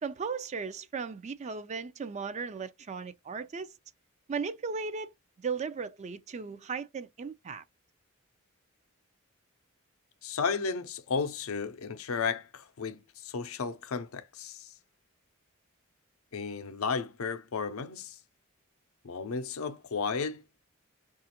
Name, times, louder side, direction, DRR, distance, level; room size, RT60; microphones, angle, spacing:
voice 1, 0.0-3.8 4.3-5.1 5.4-7.6, right 5 dB, 35° right, 0.4 m, -36 dB
voice 2, 10.2-14.7 16.3-18.2 19.0-20.4, left 5 dB, 85° left, 0.5 m, -33 dB
4.9 x 2.4 x 2.8 m
head